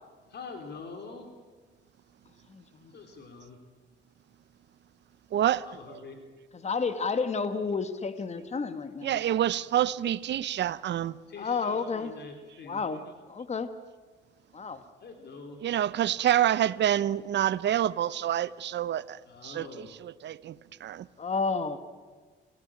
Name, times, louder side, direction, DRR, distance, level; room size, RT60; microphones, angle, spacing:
voice 1, 0.3-1.3 2.9-3.6 5.7-6.3 11.3-13.1 15.0-15.6 19.2-20.0, left 4 dB, 60° left, 3.7 m, -45 dB
voice 2, 2.5-2.9 6.6-9.2 11.4-12.1 12.6-13.0 13.3-13.7 14.5-14.8 21.2-21.8, left 4 dB, 35° left, 1.6 m, -31 dB
voice 3, 5.3-6.0 9.0-11.2 15.6-21.1, right 11 dB, 60° right, 0.8 m, -28 dB
30.0 x 16.5 x 8.8 m
cardioid pair, 90°, 20 cm